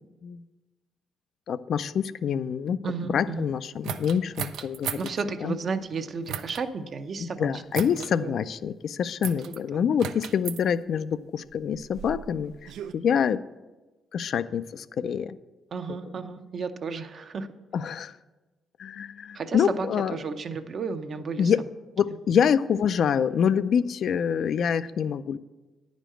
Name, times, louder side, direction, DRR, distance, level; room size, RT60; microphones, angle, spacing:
voice 1, 1.5-2.8 3.1-5.0 5.4-5.6 7.4-12.5 12.9-13.4 14.1-15.4 17.7-18.1 18.8-20.1 21.4-21.6 22.0-25.4, left 7 dB, 65° left, 15 dB, 0.4 m, -26 dB
voice 2, 2.8-3.5 5.0-7.6 7.9-8.3 9.4-9.9 15.7-17.5 19.3-21.5, right 5 dB, 50° right, 8 dB, 0.8 m, -33 dB
sound 1, 3.8-5.2 6.3-6.7 7.7-8.1 9.2-9.6 10.0-10.6 11.5-12.9, right 9 dB, 85° right, 0.5 m, -36 dB
10.0 x 5.2 x 7.6 m, 1.2 s
cardioid pair, 90°, 0 cm